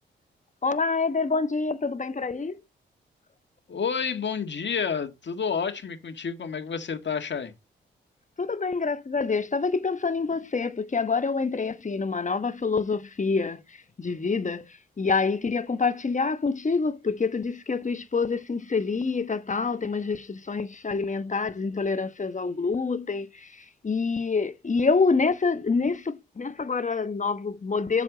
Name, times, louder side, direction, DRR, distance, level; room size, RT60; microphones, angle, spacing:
voice 1, 0.6-2.6 8.4-28.0, left 4 dB, 35° left, 1.1 m, -27 dB
voice 2, 3.7-7.5, left 6 dB, 60° left, 1.9 m, -30 dB
7.7 x 7.1 x 4.0 m
supercardioid pair, 45°, 21 cm